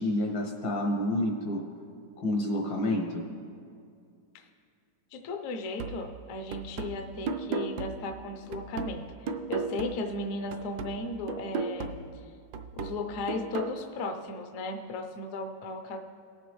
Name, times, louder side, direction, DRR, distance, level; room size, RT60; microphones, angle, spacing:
voice 1, 0.0-1.6 2.2-3.2, left 1 dB, 75° left, 0 dB, 2.2 m, -29 dB
voice 2, 5.1-12.1 12.7-16.0, left 2 dB, 60° left, 5 dB, 0.9 m, -36 dB
sound 1, 5.8-10.2 10.5-13.8, right 4 dB, 70° right, 1.1 m, -36 dB
18.5 x 7.1 x 3.1 m, 2.4 s
omnidirectional pair, 2.0 m